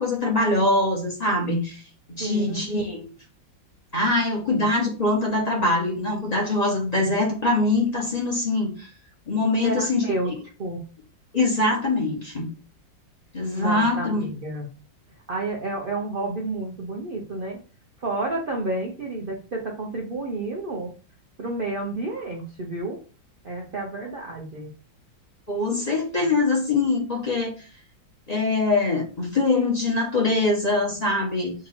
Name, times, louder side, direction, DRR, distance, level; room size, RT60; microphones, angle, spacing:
voice 1, 0.0-1.8 2.1-3.1 3.9-8.9 9.3-10.4 11.3-12.5 13.3-14.3 25.5-27.5 28.3-31.5, left 2 dB, 25° left, -2 dB, 1.1 m, -23 dB
voice 2, 2.2-2.6 9.6-10.3 10.6-10.8 13.6-14.7 15.3-17.6 18.0-20.9 21.4-23.0 23.4-24.7, right 2 dB, 75° right, -2 dB, 0.5 m, -30 dB
3.8 x 2.8 x 4.2 m, 0.37 s
omnidirectional pair, 2.0 m